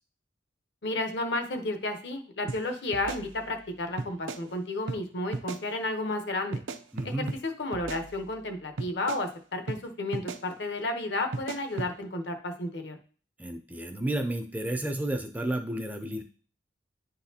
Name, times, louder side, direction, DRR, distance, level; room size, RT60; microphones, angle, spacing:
voice 1, 0.8-6.6 7.0-13.0, left 2 dB, 60° left, 6 dB, 0.9 m, -32 dB
sound 1, 2.5-2.6 2.9-3.7 4.0-4.4 4.9-5.0 5.3-5.6 6.5-7.4 7.7-8.5 8.8-9.2 9.7-9.8 10.1-10.4 11.3-11.9, right 3 dB, 80° right, 0.5 m, -36 dB
voice 2, 6.9-7.3 13.4-16.2, right 1 dB, 10° right, 6 dB, 0.4 m, -31 dB
9.9 x 4.0 x 2.8 m, 0.41 s
head